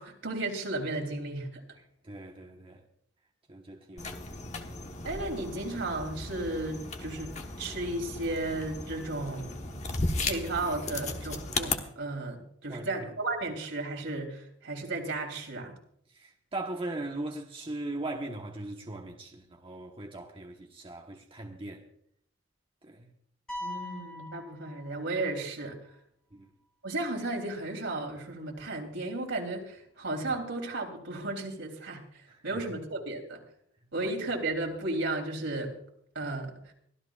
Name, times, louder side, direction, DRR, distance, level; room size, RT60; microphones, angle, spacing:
voice 1, 0.0-1.6 5.0-9.8 10.2-15.7 23.6-25.9 26.8-33.4 33.9-35.8 36.1-36.7, right 2 dB, 85° right, 3.4 m, -34 dB
voice 2, 2.0-2.8 3.5-4.2 12.7-13.0 16.1-21.8 22.8-23.1 26.3-26.5 32.3-32.4, right 2 dB, 30° right, 1.1 m, -39 dB
sound 1, 4.0-11.8, left 3 dB, 35° left, 1.2 m, -36 dB
sound 2, 23.5-25.4, left 1 dB, 5° left, 3.2 m, -41 dB
24.5 x 13.5 x 2.4 m
head